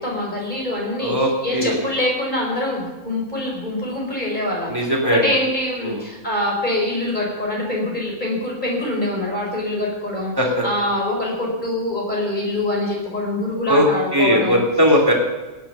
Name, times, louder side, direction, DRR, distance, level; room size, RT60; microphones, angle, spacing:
voice 1, 0.0-10.3 10.6-14.6, left 1 dB, 25° left, -2 dB, 4.9 m, -24 dB
voice 2, 1.0-1.8 4.7-5.2 5.8-6.0 10.4-10.6 13.7-13.8 14.1-15.1, equal, 10° right, -2 dB, 3.1 m, -18 dB
17.5 x 10.5 x 5.8 m, 1.1 s
omnidirectional pair, 1.9 m